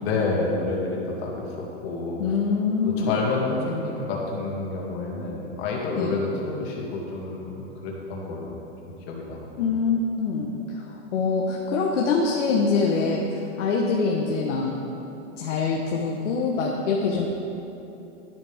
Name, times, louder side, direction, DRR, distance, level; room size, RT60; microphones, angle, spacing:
voice 1, 0.0-2.2 2.8-8.5 8.8-9.7, left 3 dB, 55° left, -3 dB, 2.5 m, -29 dB
voice 2, 2.2-3.1 6.0-6.2 9.6-14.8 15.4-17.3, left 4 dB, 75° left, -1 dB, 1.2 m, -24 dB
11.0 x 9.9 x 3.5 m, 3.0 s
hypercardioid pair, 135°, 36 cm